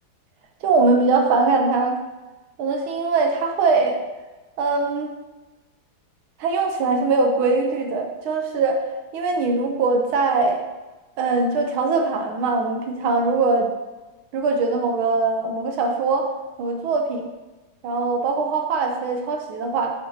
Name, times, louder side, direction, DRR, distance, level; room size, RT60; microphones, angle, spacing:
voice 1, 0.6-2.0 2.6-4.0 4.6-5.1 6.4-8.8 9.1-10.6 11.2-13.7 14.3-16.3 16.6-17.3 17.8-19.9, right 3 dB, 80° right, 3 dB, 1.5 m, -21 dB
7.2 x 5.6 x 2.7 m, 1.1 s
omnidirectional pair, 2.3 m